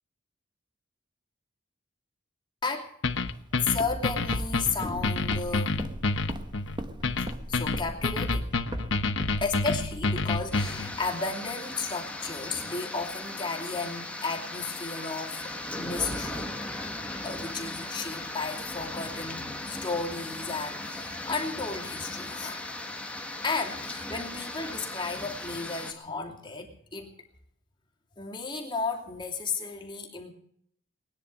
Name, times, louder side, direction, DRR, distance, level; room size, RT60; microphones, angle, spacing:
sound 1, 3.0-10.9, left 3 dB, 65° left, 1.0 m, -28 dB
Walk footsteps, 3.2-11.1, right 1 dB, 20° right, 1.2 m, -39 dB
voice 1, 3.6-6.1 7.5-8.6 9.4-16.5 17.2-22.7 23.4-27.1 28.2-30.3, left 4 dB, 25° left, 0 dB, 2.8 m, -33 dB
sound 2, 10.5-25.9, left 2 dB, 5° left, 1.7 m, -37 dB
21.0 x 10.0 x 6.5 m, 0.69 s
head